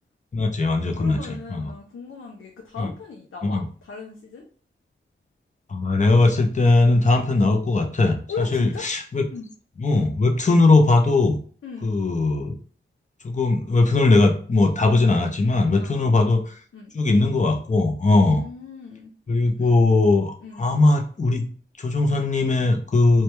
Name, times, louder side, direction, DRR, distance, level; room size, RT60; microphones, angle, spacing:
voice 1, 0.3-1.7 2.8-2.9 3.4-3.6 5.7-9.2 9.8-11.4 11.8-12.6 13.2-16.5 16.9-18.4 19.3-21.5 21.8-23.2, left 2 dB, 35° left, 4 dB, 0.5 m, -19 dB
voice 2, 0.9-4.4 8.3-8.9 9.3-9.5 11.6-11.9 15.7-16.2 16.7-16.9 18.2-19.1 19.6-19.8 20.4-20.7, left 5 dB, 90° left, 1 dB, 0.4 m, -37 dB
2.2 x 2.2 x 3.0 m, 0.44 s
wide cardioid pair, 55°, 21 cm